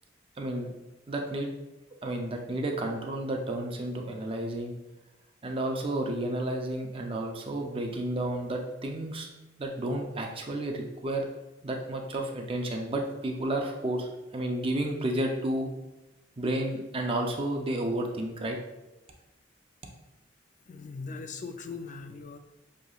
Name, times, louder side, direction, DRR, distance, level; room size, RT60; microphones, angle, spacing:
voice 1, 0.4-0.7 1.1-1.5 2.0-4.7 5.4-9.3 9.6-11.3 11.6-15.7 16.4-18.6, right 1 dB, 30° right, 2 dB, 0.5 m, -31 dB
voice 2, 20.7-22.4, left 4 dB, 40° left, 8 dB, 0.3 m, -40 dB
6.2 x 2.8 x 2.4 m, 0.99 s
head